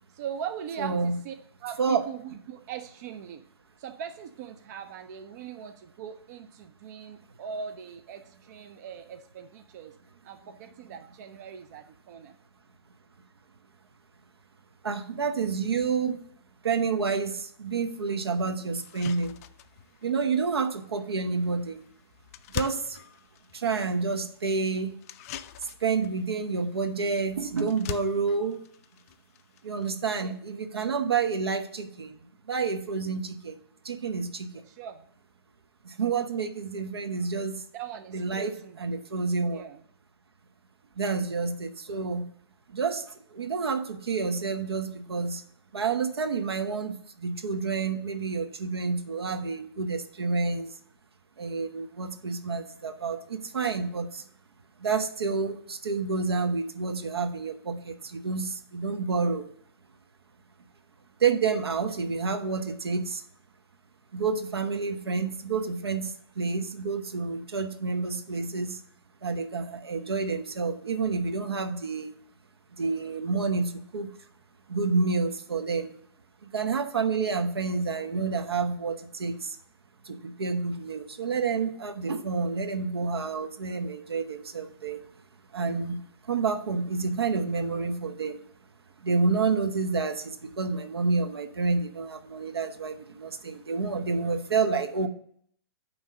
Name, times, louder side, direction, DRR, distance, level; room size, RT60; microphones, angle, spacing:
voice 1, 0.1-1.3 1.6-3.4 3.8-9.9 10.2-12.3 30.2-30.3 34.5-35.0 37.7-38.8 39.4-39.8, right 8 dB, 45° right, 7 dB, 0.5 m, -40 dB
voice 2, 0.8-1.2 1.8-2.0 14.8-16.2 16.6-19.4 20.0-21.8 22.5-23.0 23.5-24.9 25.8-28.6 29.6-32.2 32.5-33.6 33.8-34.5 36.0-37.6 38.1-39.6 41.0-42.2 42.7-43.0 43.3-45.4 45.7-50.7 51.4-54.2 54.8-59.4 61.2-63.2 64.1-66.1 66.4-68.8 69.2-72.1 72.8-74.1 74.7-75.9 76.4-79.6 80.1-85.0 85.5-86.0 86.3-88.4 89.0-95.1, right 4 dB, 75° right, 7 dB, 0.9 m, -29 dB
sound 1, 17.7-17.8 18.3-18.4 18.7-30.4, left 12 dB, 35° left, 0.3 m, -44 dB
9.0 x 3.1 x 6.4 m, 0.65 s
figure-of-eight pair, 125°, 13 cm